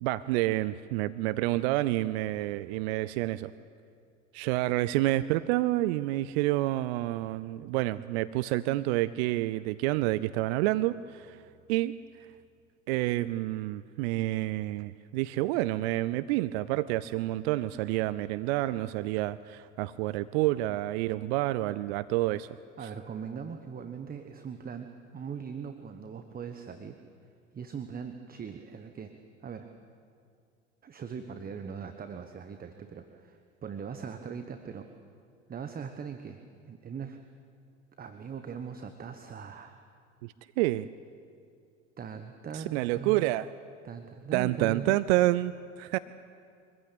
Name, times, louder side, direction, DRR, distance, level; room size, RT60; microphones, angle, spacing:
voice 1, 0.0-3.5 4.3-11.4 11.7-11.9 12.9-22.5 40.2-40.9 42.5-43.5 44.3-46.0, right 17 dB, 55° right, 16 dB, 0.6 m, -28 dB
voice 2, 22.8-27.0 27.5-29.1 29.4-29.7 30.8-34.9 35.5-36.4 36.7-37.2 38.0-39.8 42.0-43.3 43.8-45.0, right 6 dB, 25° right, 8 dB, 1.2 m, -40 dB
24.0 x 15.0 x 8.7 m, 2.3 s
figure-of-eight pair, 75°, 38 cm